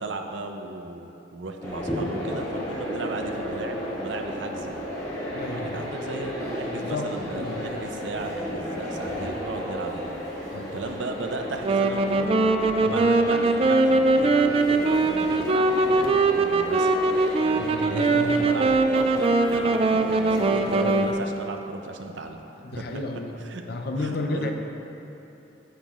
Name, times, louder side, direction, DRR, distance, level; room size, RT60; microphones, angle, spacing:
voice 1, 0.0-4.8 5.6-10.1 10.4-12.3 12.8-16.9 17.4-22.4 22.7-23.6 24.0-24.5, right 3 dB, 75° right, 4 dB, 0.6 m, -36 dB
sound 1, 1.6-21.1, equal, 15° left, 1.7 m, -33 dB
voice 2, 5.3-5.8 6.6-7.6 10.5-10.8 12.8-13.0 17.6-18.5 20.6-21.0 22.6-23.4 23.7-24.5, left 2 dB, 60° left, 4 dB, 0.6 m, -33 dB
Wind instrument woodwind instrument, 11.6-21.2, right 3 dB, 30° right, 0.3 m, -21 dB
9.3 x 8.7 x 2.5 m, 2.9 s
head